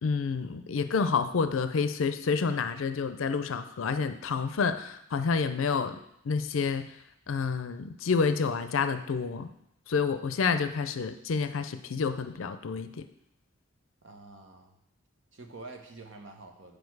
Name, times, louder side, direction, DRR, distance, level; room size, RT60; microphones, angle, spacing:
voice 1, 0.0-6.0 6.3-6.9 7.3-9.5 9.9-13.0, left 5 dB, 80° left, 10 dB, 0.5 m, -29 dB
voice 2, 14.0-14.8 15.3-16.8, right 3 dB, 65° right, 3 dB, 1.2 m, -47 dB
8.5 x 5.0 x 4.7 m, 0.76 s
head